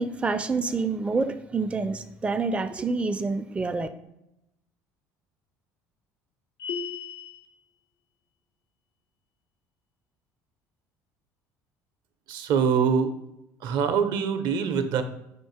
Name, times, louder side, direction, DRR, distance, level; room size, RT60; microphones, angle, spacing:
voice 1, 0.0-3.9, right 4 dB, 15° right, 9 dB, 0.4 m, -27 dB
sound 1, 6.6-7.5, left 7 dB, 80° left, 0.7 m, -34 dB
voice 2, 12.3-13.1 13.6-15.0, right 6 dB, 60° right, 9 dB, 0.5 m, -24 dB
4.4 x 2.5 x 4.8 m, 0.85 s
hypercardioid pair, 65°, 8 cm